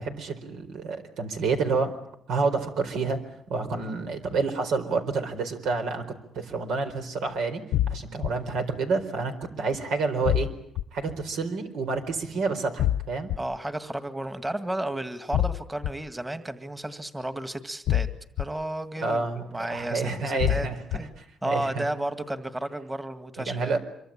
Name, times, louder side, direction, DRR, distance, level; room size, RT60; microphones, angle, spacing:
voice 1, 0.0-1.9 2.3-3.2 3.5-6.1 6.3-10.5 10.9-13.3 19.0-21.8 23.4-23.8, right 4 dB, 85° right, 6 dB, 4.3 m, -29 dB
sound 1, 7.7-8.3 10.3-10.8 12.8-13.4 15.3-15.9 17.9-18.4 20.4-21.0, left 12 dB, 90° left, 1.0 m, -25 dB
voice 2, 13.4-18.1 18.4-21.1 21.4-23.7, right 1 dB, 15° right, 10 dB, 1.9 m, -33 dB
26.0 x 24.0 x 8.7 m, 0.76 s
cardioid pair, 90°, 0 cm